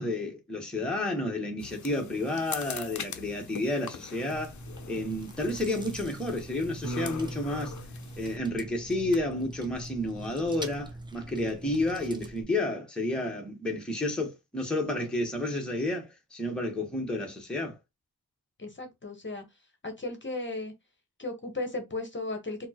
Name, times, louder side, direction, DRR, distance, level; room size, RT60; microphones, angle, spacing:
voice 1, 0.0-4.6 4.9-7.7 8.2-17.8, left 1 dB, ahead, 0.9 m, -31 dB
sound 1, 1.6-8.4, left 8 dB, 55° left, 0.5 m, -43 dB
Chewing mastication, 4.3-12.4, right 1 dB, 15° right, 0.5 m, -44 dB
Piano, 6.8-9.0, right 2 dB, 60° right, 0.8 m, -41 dB
voice 2, 18.6-19.4 19.8-20.7 21.2-22.7, left 2 dB, 30° left, 0.9 m, -35 dB
4.2 x 2.0 x 2.8 m
wide cardioid pair, 100°, 37 cm